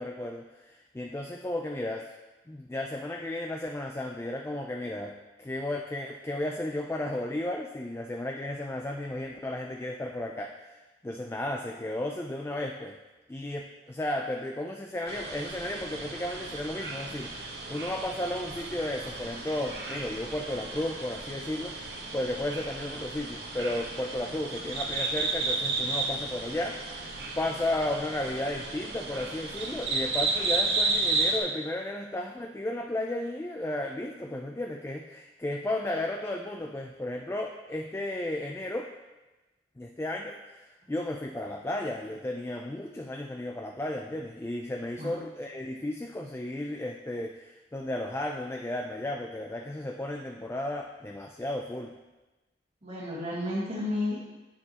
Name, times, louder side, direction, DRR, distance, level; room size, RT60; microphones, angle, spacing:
voice 1, 0.0-2.1 2.5-13.0 13.3-27.1 27.4-38.9 39.8-51.9, left 1 dB, 15° left, 2 dB, 0.3 m, -34 dB
sound 1, 15.1-31.4, right 3 dB, 65° right, 1.1 m, -33 dB
voice 2, 52.8-54.2, left 1 dB, 35° right, -10 dB, 1.5 m, -32 dB
9.8 x 6.6 x 2.9 m, 1.1 s
head